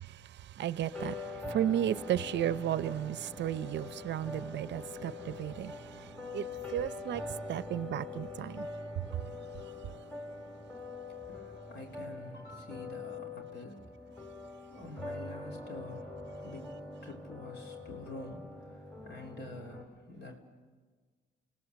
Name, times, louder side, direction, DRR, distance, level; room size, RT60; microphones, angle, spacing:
voice 1, 0.0-7.2 7.5-8.7 9.0-9.1, right 11 dB, 65° right, 0.6 m, -34 dB
sound 1, 0.9-19.8, left 3 dB, 10° left, 2.2 m, -44 dB
voice 2, 11.2-13.8 14.7-20.4, left 2 dB, 60° left, 3.2 m, -47 dB
27.5 x 17.5 x 6.9 m
cardioid pair, 90°, 20 cm